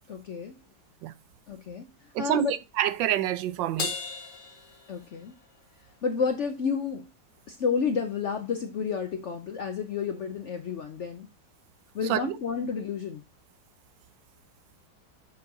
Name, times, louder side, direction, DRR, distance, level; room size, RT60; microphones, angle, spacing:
voice 1, 0.1-0.5 1.5-1.9 2.2-2.5 4.9-5.3 6.0-7.0 7.5-11.3 11.9-13.2, left 6 dB, 65° left, 0.7 m, -30 dB
voice 2, 2.1-3.9 12.1-12.4, right 12 dB, 80° right, 1.3 m, -27 dB
Crash cymbal, 3.8-5.5, left 4 dB, 85° left, 2.0 m, -36 dB
6.9 x 4.5 x 3.8 m
omnidirectional pair, 2.0 m